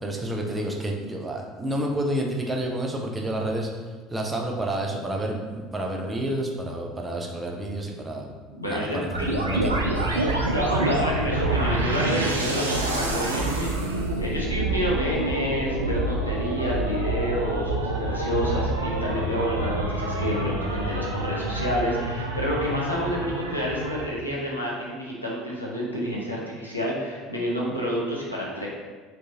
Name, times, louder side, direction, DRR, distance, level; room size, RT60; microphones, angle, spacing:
voice 1, 0.0-3.7 4.1-8.3 8.6-10.2, right 1 dB, 20° right, 0 dB, 0.6 m, -29 dB
voice 2, 8.1-9.6 10.5-28.7, equal, 90° left, -4 dB, 0.7 m, -29 dB
sound 1, 9.1-24.1, right 2 dB, 80° right, 0.4 m, -27 dB
4.4 x 3.1 x 2.7 m, 1.4 s
figure-of-eight pair, 65°, 0 cm